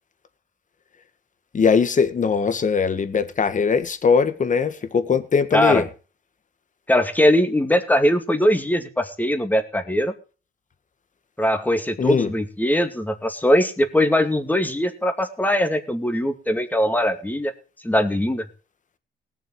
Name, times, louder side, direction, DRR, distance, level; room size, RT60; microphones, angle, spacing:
voice 1, 1.5-5.8 12.0-12.3, left 5 dB, 40° left, 1.7 m, -20 dB
voice 2, 5.5-5.8 6.9-10.1 11.4-17.5 17.8-18.5, equal, 10° left, 2.3 m, -21 dB
19.0 x 7.0 x 4.9 m
cardioid pair, 90°, 20 cm